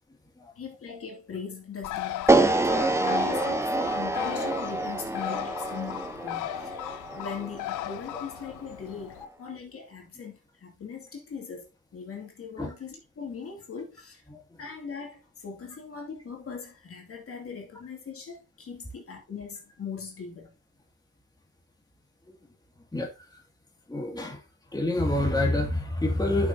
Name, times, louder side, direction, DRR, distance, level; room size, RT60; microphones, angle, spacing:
voice 1, 0.6-14.2 14.6-20.5, left 6 dB, 50° left, 2.7 m, -40 dB
Bird, 1.8-9.2, left 14 dB, 85° left, 0.6 m, -37 dB
sound 1, 2.3-8.4, right 2 dB, 10° right, 1.0 m, -27 dB
voice 2, 22.9-23.4 23.9-24.4 24.7-26.5, left 1 dB, 15° left, 2.5 m, -27 dB
10.5 x 6.2 x 2.9 m
cardioid pair, 90°, 30 cm